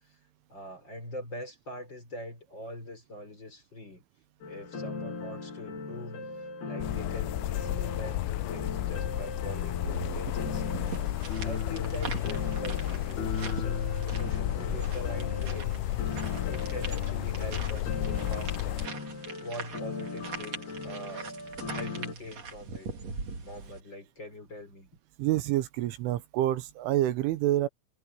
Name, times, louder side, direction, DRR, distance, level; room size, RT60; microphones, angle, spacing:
voice 1, 0.5-4.0 4.5-6.3 6.6-10.6 11.4-18.9 19.4-21.3 21.6-22.9 23.4-24.9, left 1 dB, 25° left, 5.3 m, -43 dB
sound 1, 4.4-22.1, left 4 dB, 55° left, 6.7 m, -38 dB
sound 2, 6.8-18.9, left 17 dB, 90° left, 2.5 m, -33 dB
sound 3, 9.8-23.8, right 4 dB, 40° right, 3.6 m, -42 dB
voice 2, 25.2-27.7, right 14 dB, 80° right, 3.5 m, -27 dB
omnidirectional pair, 5.6 m